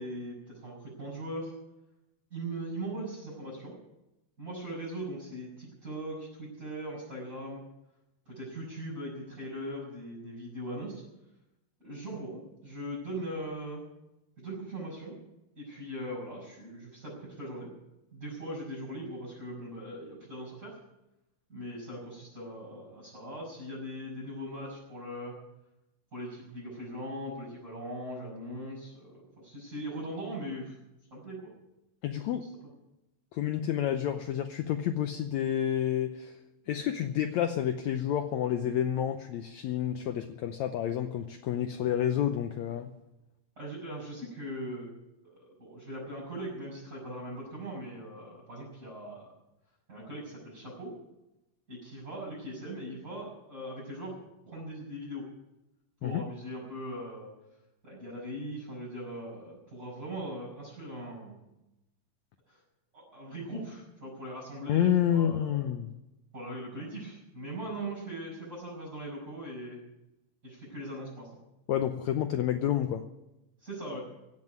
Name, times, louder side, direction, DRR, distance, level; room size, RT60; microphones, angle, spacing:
voice 1, 0.0-1.5 2.3-3.8 4.4-7.6 8.3-11.0 11.8-13.8 14.4-15.2 15.6-17.7 18.1-20.8 21.5-25.3 26.1-30.8 31.1-31.5 32.3-32.5 43.6-44.9 45.2-49.3 49.9-50.9 51.7-54.2 54.5-55.3 56.0-57.3 57.8-61.4 62.5-62.6 62.9-65.6 66.3-69.8 70.4-71.3 73.6-74.0, right 1 dB, 25° right, -8 dB, 7.2 m, -40 dB
voice 2, 32.0-32.5 33.3-36.4 36.7-42.9 56.0-56.2 64.7-65.9 71.7-73.0, left 10 dB, 75° left, 7 dB, 1.7 m, -29 dB
17.0 x 7.7 x 9.5 m, 0.93 s
omnidirectional pair, 4.0 m